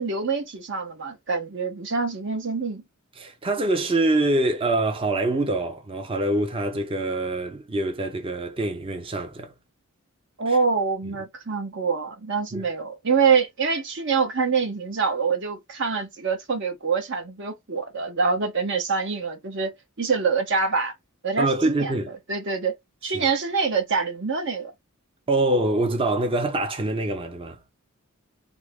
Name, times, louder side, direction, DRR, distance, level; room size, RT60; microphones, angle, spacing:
voice 1, 0.0-2.8 10.4-19.7 20.0-20.9 21.2-21.9 22.3-22.7 23.0-24.7, right 5 dB, 60° right, 1.0 m, -25 dB
voice 2, 3.2-9.5 10.5-10.6 12.5-12.7 21.4-22.1 23.1-23.3 25.3-27.7, right 2 dB, 25° right, 0.6 m, -25 dB
3.5 x 2.0 x 3.4 m
head